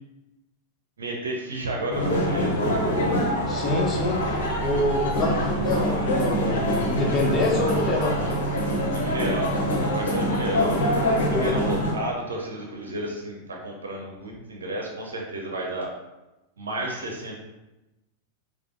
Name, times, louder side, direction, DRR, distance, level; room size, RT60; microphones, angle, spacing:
voice 1, 1.0-2.6 8.9-10.9 11.2-15.9 16.6-17.4, right 1 dB, 70° right, 0 dB, 0.7 m, -32 dB
sound 1, 1.9-11.9, equal, 60° left, 0.9 m, -24 dB
voice 2, 3.5-8.2 11.3-11.6, left 2 dB, 20° left, -2 dB, 1.0 m, -26 dB
4.8 x 2.0 x 3.4 m, 1.0 s
figure-of-eight pair, 90°, 0 cm